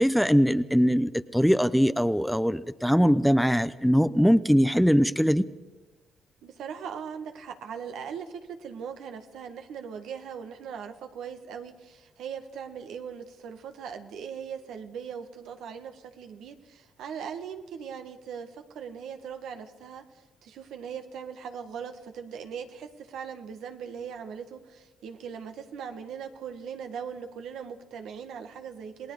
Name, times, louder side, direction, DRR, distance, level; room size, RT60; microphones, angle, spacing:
voice 1, 0.0-5.4, equal, ahead, 14 dB, 0.7 m, -22 dB
voice 2, 6.4-29.1, right 7 dB, 80° right, 6 dB, 1.7 m, -40 dB
28.0 x 19.0 x 4.9 m, 1.1 s
supercardioid pair, 70°, 0 cm